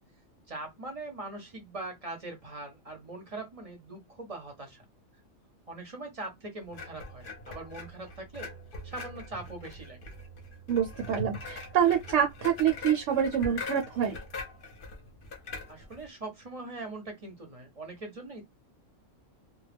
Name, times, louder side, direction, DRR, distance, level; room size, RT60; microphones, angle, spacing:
voice 1, 0.5-4.8 5.7-8.5 8.8-10.0 15.7-18.4, right 2 dB, 35° right, 0.6 m, -41 dB
sound 1, 6.7-16.1, left 2 dB, 50° left, 0.7 m, -42 dB
voice 2, 10.7-14.2, right 8 dB, 70° right, 0.9 m, -26 dB
2.2 x 2.1 x 3.3 m
omnidirectional pair, 1.4 m